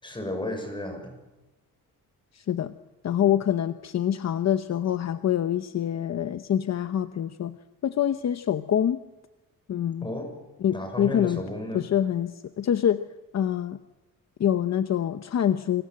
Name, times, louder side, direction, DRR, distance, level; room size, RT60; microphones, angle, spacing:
voice 1, 0.0-1.2 10.0-10.3 10.7-11.9, left 1 dB, 15° left, 5 dB, 6.5 m, -33 dB
voice 2, 2.3-2.7 3.0-7.6 7.8-9.0 9.7-10.1 10.6-11.4 11.7-13.0 13.3-13.8 14.4-15.8, left 10 dB, 50° left, 10 dB, 0.9 m, -25 dB
28.5 x 27.0 x 7.8 m, 1.0 s
wide cardioid pair, 160°, 34 cm